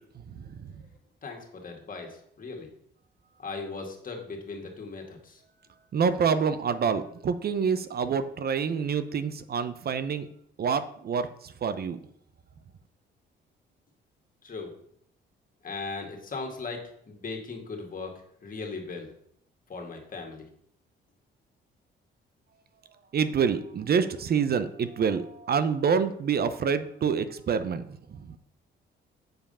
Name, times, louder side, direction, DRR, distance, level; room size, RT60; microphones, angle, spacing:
voice 1, 0.1-0.8 5.9-10.3 10.6-12.0 23.1-28.4, right 6 dB, 50° right, 11 dB, 0.7 m, -27 dB
voice 2, 1.2-2.7 3.4-5.4 14.4-14.8 15.6-18.1 18.4-19.1 19.7-20.5, left 4 dB, 40° left, 2 dB, 2.2 m, -38 dB
7.8 x 4.9 x 5.5 m, 0.68 s
cardioid pair, 80°, 21 cm